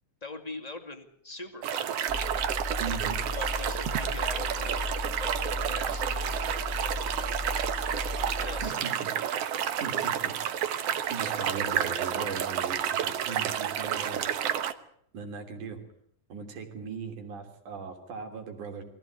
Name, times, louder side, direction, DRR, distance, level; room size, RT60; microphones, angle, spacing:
voice 1, 0.2-1.9 3.3-4.9 5.2-7.0 8.3-8.7, left 2 dB, 15° left, 4 dB, 2.0 m, -42 dB
sound 1, 1.6-14.7, right 9 dB, 60° right, 2.0 m, -30 dB
sound 2, 2.1-8.7, left 2 dB, ahead, 2.1 m, -36 dB
voice 2, 2.8-3.2 8.6-9.4 9.8-10.3 10.8-14.4 15.1-15.8 16.3-18.8, right 5 dB, 90° right, 5 dB, 4.5 m, -38 dB
23.5 x 15.5 x 9.3 m, 0.70 s
omnidirectional pair, 3.4 m